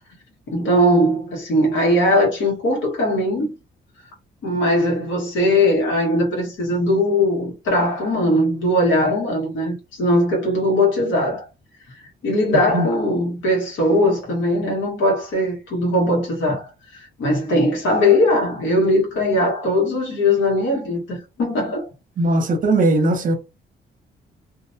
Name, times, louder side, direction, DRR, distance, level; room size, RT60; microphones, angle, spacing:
voice 1, 0.5-3.5 4.4-11.4 12.2-16.7 17.0-21.9, left 1 dB, 75° left, 1.2 m, -19 dB
voice 2, 22.2-23.4, right 2 dB, 45° right, 0.7 m, -18 dB
2.5 x 2.1 x 2.6 m
cardioid pair, 90°, 20 cm